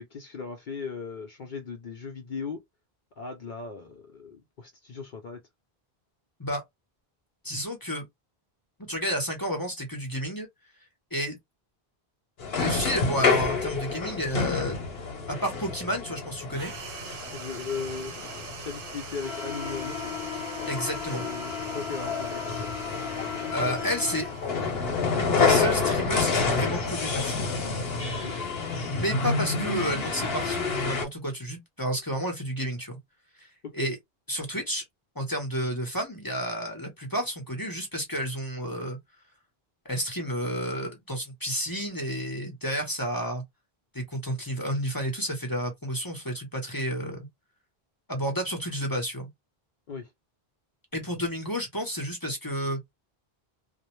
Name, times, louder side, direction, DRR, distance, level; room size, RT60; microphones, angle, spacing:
voice 1, 0.0-2.6 3.2-5.4 17.3-20.1 21.1-22.7 28.2-28.4 33.6-33.9 49.9-50.1, left 5 dB, 60° left, 0.7 m, -38 dB
voice 2, 7.4-8.0 8.9-10.5 11.1-11.4 12.6-14.8 15.3-16.7 20.7-21.2 23.5-24.3 25.2-27.4 28.9-33.0 33.4-33.5 33.7-34.0 34.3-34.8 35.2-39.0 39.8-43.4 43.9-47.3 48.1-49.3 50.9-52.8, equal, 25° left, 0.7 m, -31 dB
sound 1, 12.4-31.0, left 4 dB, 75° left, 1.0 m, -29 dB
sound 2, 16.5-25.4, right 6 dB, 65° right, 0.8 m, -44 dB
2.4 x 2.0 x 3.0 m
omnidirectional pair, 1.0 m